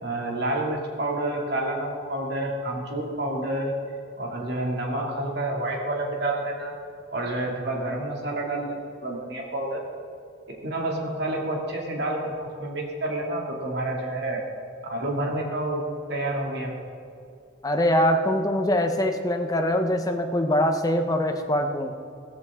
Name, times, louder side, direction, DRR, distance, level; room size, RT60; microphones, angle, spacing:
voice 1, 0.0-3.7 4.2-6.7 7.1-9.8 10.5-14.5 14.9-16.8, right 1 dB, 55° right, 0 dB, 2.5 m, -29 dB
voice 2, 17.6-22.0, left 1 dB, 20° left, 5 dB, 0.9 m, -23 dB
16.0 x 14.5 x 3.7 m, 2.5 s
head